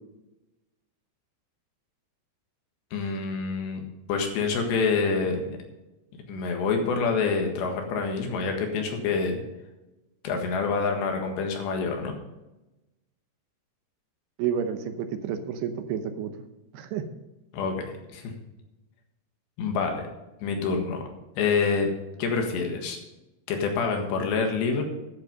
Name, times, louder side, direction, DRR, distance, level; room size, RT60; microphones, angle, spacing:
voice 1, 2.9-5.6 6.3-9.4 10.2-12.1 17.5-18.3 19.6-20.0 20.4-21.0 21.4-21.9 22.2-23.0 23.5-24.8, left 5 dB, 85° left, 3 dB, 3.9 m, -27 dB
voice 2, 14.4-16.3 16.7-17.0, right 8 dB, 75° right, 8 dB, 2.8 m, -30 dB
11.5 x 7.9 x 5.3 m, 1.0 s
omnidirectional pair, 4.9 m